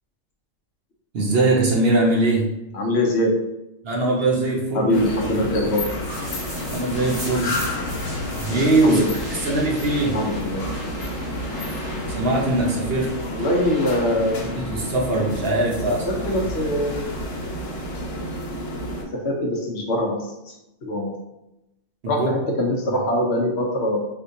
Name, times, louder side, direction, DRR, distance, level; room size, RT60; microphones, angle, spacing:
voice 1, 1.1-2.5 3.8-5.0 5.4-5.6 6.7-7.6 8.4-9.0 9.3-10.2 12.2-13.1 14.5-16.3 22.0-22.3, right 2 dB, 60° right, -1 dB, 0.8 m, -21 dB
voice 2, 2.7-3.3 4.7-5.8 8.8-9.1 10.1-10.9 13.3-14.5 16.1-17.0 19.2-20.6 20.8-21.1 22.1-24.0, left 1 dB, 65° left, -1 dB, 0.8 m, -23 dB
sound 1, 4.9-19.0, left 1 dB, 90° left, 1.1 m, -30 dB
sound 2, 6.0-16.1, equal, 20° right, 0.8 m, -39 dB
4.3 x 2.2 x 2.6 m, 0.91 s
omnidirectional pair, 1.3 m